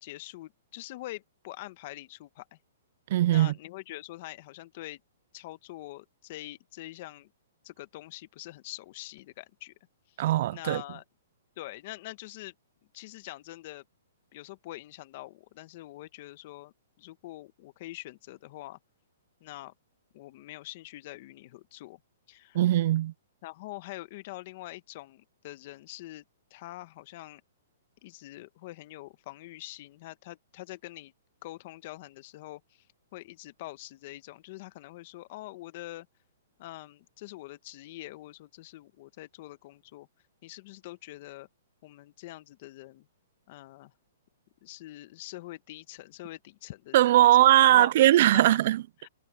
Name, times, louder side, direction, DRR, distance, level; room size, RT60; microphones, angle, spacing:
voice 1, 0.0-2.6 3.3-5.0 5.3-7.3 7.6-9.7 10.5-11.0 11.6-12.5 12.9-13.8 14.3-18.8 19.4-19.7 20.1-22.0 22.3-22.6 23.4-26.2 26.5-27.4 28.0-31.1 31.4-32.9 33.1-36.1 36.6-40.1 40.4-41.5 41.8-43.1 43.5-43.9 44.6-47.9 48.3-48.6 49.0-49.1, left 17 dB, 45° left, 1.3 m, -44 dB
voice 2, 3.1-3.5 10.2-10.8 22.5-23.1 46.9-48.8, right 14 dB, 50° right, 0.3 m, -20 dB
hypercardioid pair, 150°, 0 cm